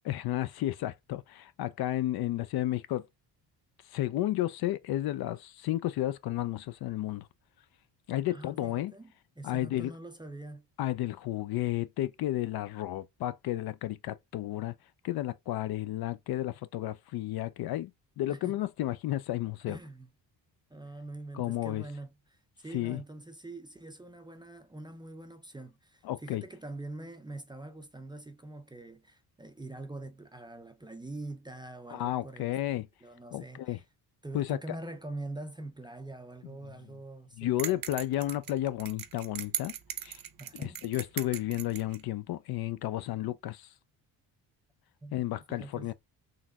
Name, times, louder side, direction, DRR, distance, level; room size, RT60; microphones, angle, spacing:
voice 1, 0.0-3.0 3.9-7.3 8.1-8.9 9.4-9.9 10.8-14.7 15.0-17.9 18.2-19.8 21.3-21.8 22.7-23.0 26.0-26.4 31.9-32.9 33.3-33.8 34.3-34.6 37.4-39.7 40.0-40.2 40.5-43.7 45.1-45.9, left 14 dB, 60° left, 0.5 m, -32 dB
voice 2, 8.3-10.7 18.3-18.6 19.7-20.1 20.7-32.5 33.0-33.8 34.2-37.8 40.4-40.8 45.0-45.2 45.5-45.9, right 2 dB, 10° right, 0.4 m, -44 dB
sound 1, 37.6-42.0, right 11 dB, 50° right, 0.7 m, -39 dB
3.9 x 2.9 x 2.3 m
cardioid pair, 85°, 43 cm